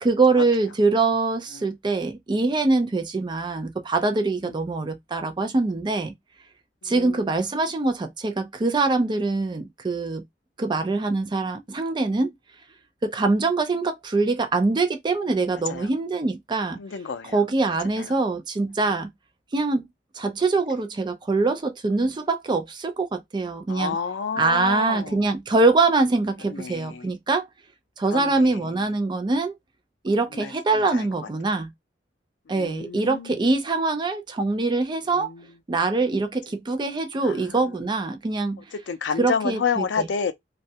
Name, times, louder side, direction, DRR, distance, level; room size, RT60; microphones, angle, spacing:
voice 1, 0.0-6.1 6.8-10.2 10.6-12.3 13.0-16.8 17.3-19.1 19.5-19.8 20.2-24.0 24.4-27.5 28.0-29.6 30.0-31.7 32.5-35.3 35.7-38.6 39.2-40.1, right 3 dB, 25° right, 0.4 m, -23 dB
voice 2, 6.8-7.2 15.7-15.9 16.8-17.4 18.0-18.1 23.7-25.3 26.5-27.1 28.1-28.7 30.3-31.1 32.5-33.4 35.2-35.4 37.2-37.5 38.7-40.3, left 6 dB, 75° left, 0.4 m, -30 dB
2.3 x 2.0 x 2.7 m
head